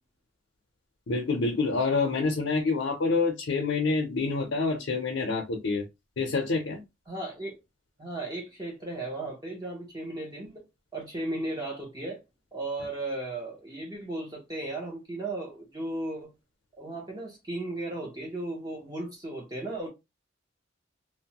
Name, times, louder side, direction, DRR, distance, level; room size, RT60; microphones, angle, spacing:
voice 1, 1.1-5.8 6.2-6.8, left 4 dB, 75° left, 0.6 m, -27 dB
voice 2, 7.1-7.6 8.0-10.6 10.9-12.2 12.5-16.3 16.7-19.9, right 2 dB, 20° right, 0.6 m, -35 dB
2.9 x 2.0 x 2.8 m
head